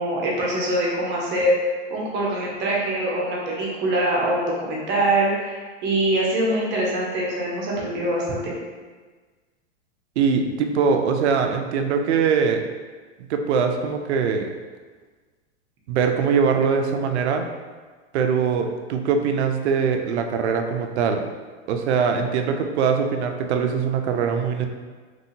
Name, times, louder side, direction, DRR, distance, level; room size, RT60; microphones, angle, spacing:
voice 1, 0.0-8.5, right 1 dB, 30° right, -4 dB, 0.8 m, -24 dB
voice 2, 10.2-12.6 13.3-14.5 15.9-17.5 18.1-21.3 21.7-24.7, right 6 dB, 70° right, 5 dB, 0.5 m, -22 dB
3.0 x 2.7 x 2.6 m, 1.4 s
hypercardioid pair, 115°, 34 cm